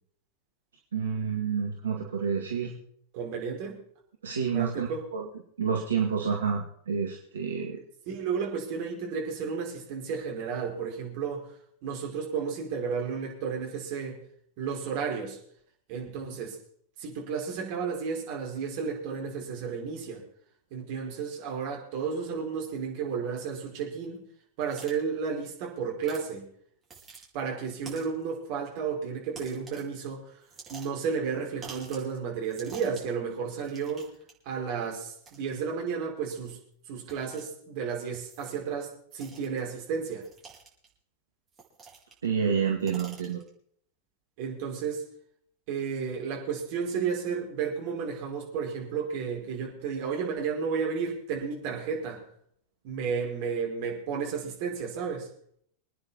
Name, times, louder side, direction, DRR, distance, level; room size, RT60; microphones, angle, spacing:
voice 1, 0.9-2.7 4.2-5.2 5.6-7.8 42.2-43.4, right 6 dB, 70° right, -1 dB, 2.2 m, -29 dB
voice 2, 3.1-3.8 4.5-5.0 8.1-11.5 11.8-14.2 14.6-15.4 15.9-16.6 17.0-20.2 20.7-24.2 24.6-26.5 27.3-30.3 30.7-34.1 34.4-36.6 36.9-40.2 44.4-45.0 45.7-52.2 52.8-55.3, right 6 dB, 45° right, -1 dB, 4.8 m, -32 dB
sound 1, 24.6-24.9 26.0-26.3 26.8-27.3 27.9-28.2 29.3-29.9 30.4-31.1 31.6-32.1 32.4-33.1 33.6-34.3 35.2-35.4 36.3-36.5 37.1-37.4 38.1-38.6 39.1-39.6 40.2-40.9 41.5-42.3 42.6-43.5, right 5 dB, 20° right, 5.5 m, -48 dB
25.5 x 9.7 x 4.2 m, 0.64 s
figure-of-eight pair, 90°, 0 cm